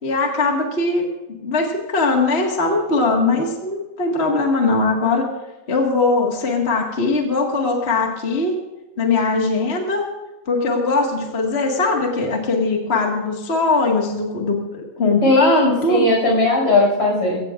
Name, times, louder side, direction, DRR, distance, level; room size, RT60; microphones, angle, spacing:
voice 1, 0.0-5.3 5.7-8.5 9.0-10.1 10.4-16.1, left 3 dB, 25° left, 0 dB, 1.5 m, -20 dB
voice 2, 15.2-17.4, left 2 dB, 50° left, -1 dB, 6.6 m, -18 dB
23.0 x 16.5 x 2.5 m, 1.1 s
omnidirectional pair, 3.3 m